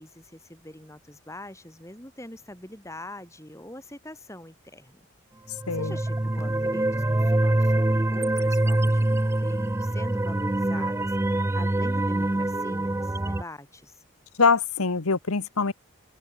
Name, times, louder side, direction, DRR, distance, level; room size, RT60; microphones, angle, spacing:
voice 1, 0.0-5.1 5.7-14.0, left 1 dB, 15° left, 3.5 m, -44 dB
sound 1, 5.5-13.4, right 1 dB, 10° right, 0.4 m, -24 dB
voice 2, 5.7-6.0 14.4-15.7, left 4 dB, 85° left, 1.2 m, -23 dB
open air
head